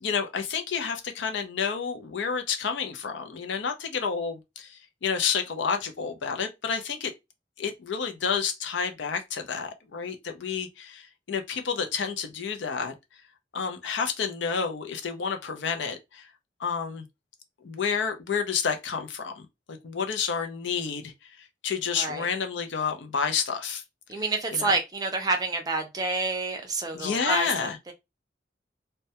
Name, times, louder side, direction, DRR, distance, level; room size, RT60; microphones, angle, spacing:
voice 1, 0.0-4.7 5.0-7.1 7.6-11.0 11.3-12.9 13.5-16.3 16.6-17.0 17.6-19.3 19.7-21.1 21.6-23.8 24.5-24.7 26.9-27.8, left 6 dB, 85° left, 0.5 m, -29 dB
voice 2, 21.9-22.3 24.1-27.9, right 3 dB, 20° right, 0.5 m, -28 dB
2.2 x 2.1 x 2.7 m
head